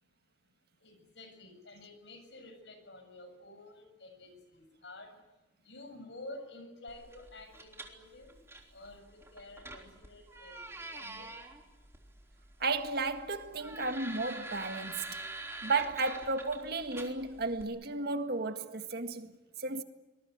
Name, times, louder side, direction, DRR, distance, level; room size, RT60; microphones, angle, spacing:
voice 1, 0.8-5.2 5.6-8.4 8.7-11.3, left 2 dB, 75° left, 6.9 m, -50 dB
sound 1, 6.9-17.6, right 2 dB, 15° right, 3.5 m, -47 dB
voice 2, 12.6-15.2 15.6-19.3 19.6-19.8, right 3 dB, 60° right, 1.8 m, -33 dB
25.5 x 21.0 x 9.5 m
head